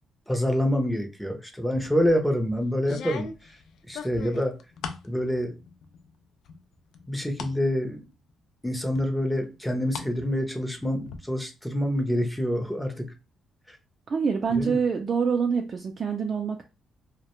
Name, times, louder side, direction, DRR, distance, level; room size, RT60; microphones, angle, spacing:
voice 1, 0.3-3.6 3.9-4.5 5.0-5.5 7.1-8.1 8.6-13.1 13.7-13.8 14.5-14.8, equal, 5° left, 4 dB, 0.6 m, -27 dB
sound 1, 1.8-2.2 2.8-5.1 5.5-6.1 6.5-7.6 8.0-8.1 9.0-10.1 10.4-11.2, left 6 dB, 75° left, 0.4 m, -39 dB
voice 2, 14.1-16.6, right 6 dB, 45° right, 3 dB, 0.4 m, -26 dB
2.2 x 2.1 x 2.9 m, 0.30 s
cardioid pair, 90°, 0 cm